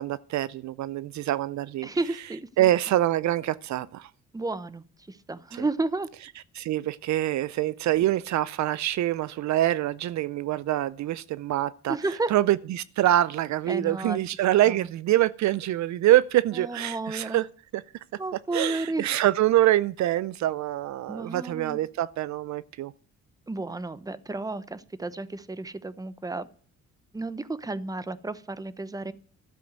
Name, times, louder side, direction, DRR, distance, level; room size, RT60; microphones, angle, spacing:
voice 1, 0.0-1.9 2.6-4.1 6.5-12.0 12.3-17.5 17.7-17.8 18.5-22.9, right 14 dB, 65° right, 0.5 m, -25 dB
voice 2, 1.8-2.7 4.3-6.1 11.9-12.3 13.7-14.2 16.5-17.4 18.2-19.1 21.1-21.8 23.5-26.5 27.1-29.1, right 2 dB, 10° right, 0.9 m, -32 dB
13.0 x 7.7 x 7.9 m
cardioid pair, 90°, 30 cm